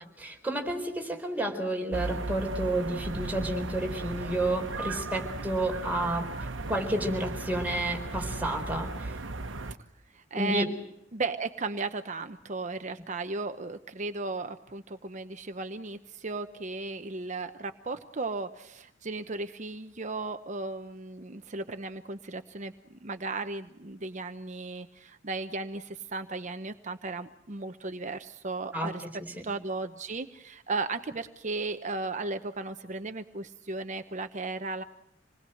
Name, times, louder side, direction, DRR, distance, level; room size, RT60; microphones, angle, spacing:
voice 1, 0.2-6.3 6.7-9.1 10.4-10.7 28.7-28.9 29.2-29.3, right 1 dB, 10° right, 2 dB, 4.2 m, -30 dB
sound 1, 1.9-9.7, right 2 dB, 85° right, 1.2 m, -36 dB
voice 2, 10.1-10.7 11.1-29.0 29.4-34.8, right 3 dB, 40° right, 8 dB, 0.9 m, -35 dB
27.5 x 20.5 x 7.8 m, 0.81 s
head